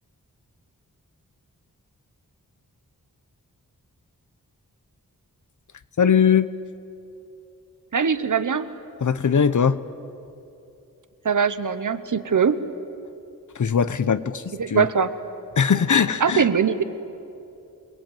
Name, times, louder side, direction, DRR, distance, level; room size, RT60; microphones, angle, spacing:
voice 1, 6.0-6.5 9.0-9.8 13.6-14.9 15.6-16.5, left 7 dB, 60° left, 14 dB, 0.9 m, -20 dB
voice 2, 7.9-8.7 11.2-12.6 14.6-15.1 16.2-16.8, right 6 dB, 60° right, 12 dB, 1.1 m, -21 dB
27.5 x 20.5 x 9.1 m, 2.8 s
wide cardioid pair, 95°, 34 cm